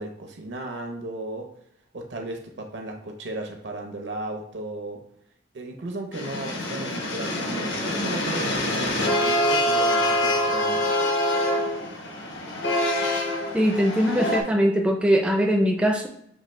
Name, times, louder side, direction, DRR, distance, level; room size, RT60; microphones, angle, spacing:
voice 1, 0.0-1.5 1.9-5.0 5.5-10.8, right 2 dB, 75° right, 3 dB, 0.8 m, -35 dB
sound 1, 6.1-14.4, left 1 dB, 80° left, 0.9 m, -25 dB
voice 2, 13.5-16.1, equal, 5° right, 1 dB, 0.4 m, -21 dB
6.4 x 2.6 x 3.2 m, 0.71 s
head